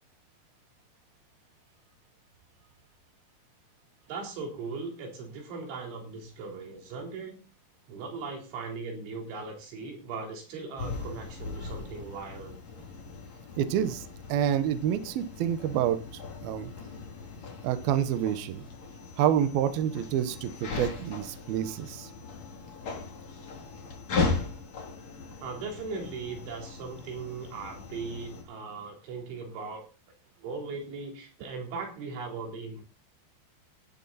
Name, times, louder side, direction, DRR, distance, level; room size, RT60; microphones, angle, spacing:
voice 1, 4.1-7.4 7.9-12.6 25.4-29.8 30.4-32.8, right 4 dB, 85° right, 2 dB, 6.3 m, -38 dB
sound 1, 10.8-28.4, left 4 dB, 40° left, 3.9 m, -38 dB
voice 2, 13.6-14.0 14.3-16.0 16.4-16.7 17.6-18.6 19.2-22.1, right 10 dB, 70° right, 10 dB, 2.6 m, -28 dB
16.5 x 12.0 x 4.2 m, 0.34 s
omnidirectional pair, 5.3 m